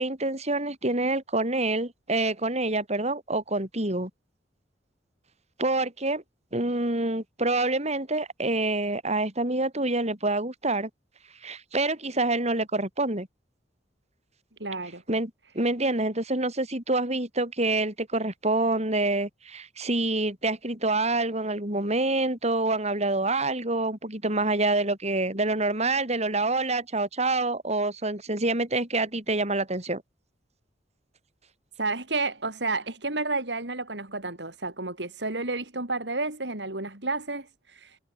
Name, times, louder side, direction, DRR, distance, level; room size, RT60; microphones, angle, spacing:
voice 1, 0.0-4.1 5.6-6.2 6.5-10.9 11.4-13.3 15.1-30.0, right 2 dB, 40° right, 7.7 m, -27 dB
voice 2, 14.6-15.0 31.8-38.0, right 3 dB, 70° right, 5.2 m, -31 dB
head